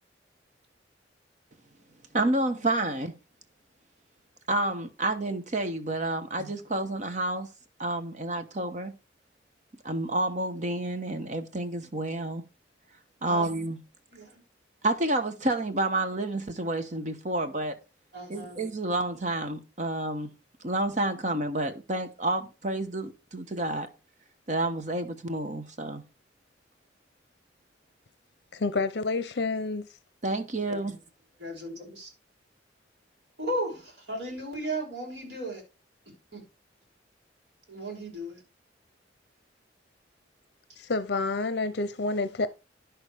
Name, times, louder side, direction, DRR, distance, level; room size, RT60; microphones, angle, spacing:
voice 1, 2.1-3.1 4.5-7.5 7.8-9.0 9.8-12.4 13.2-13.8 14.8-17.7 18.3-20.3 20.6-23.9 24.5-26.0 30.2-31.0, right 2 dB, 40° right, 1.0 m, -29 dB
voice 2, 14.1-14.4 18.1-18.6 28.7-28.8 30.7-30.8 31.4-32.1 33.4-35.6 36.1-36.4 37.7-38.4, right 1 dB, 65° right, 5.8 m, -35 dB
voice 3, 28.5-29.9 40.8-42.5, left 3 dB, 60° left, 0.6 m, -28 dB
10.5 x 6.4 x 4.9 m
head